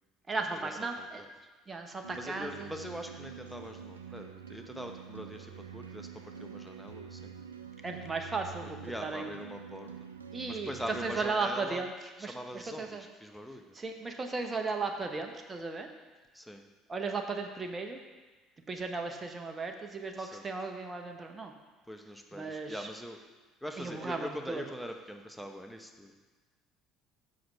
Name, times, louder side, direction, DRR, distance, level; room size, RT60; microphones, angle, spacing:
voice 1, 0.3-1.2 1.7-2.7 7.8-9.3 10.3-13.0 13.7-15.9 16.9-18.0 18.7-21.5 22.3-22.9 23.8-24.6, right 4 dB, 25° right, 4 dB, 0.9 m, -36 dB
sound 1, 2.0-11.3, right 7 dB, 90° right, 0.4 m, -46 dB
voice 2, 2.2-7.3 8.8-9.9 10.5-11.9 12.3-13.6 16.3-16.6 20.2-20.4 21.9-23.2 23.6-26.1, equal, ahead, 4 dB, 0.9 m, -42 dB
7.8 x 6.0 x 5.3 m, 1.3 s
hypercardioid pair, 60°, 0 cm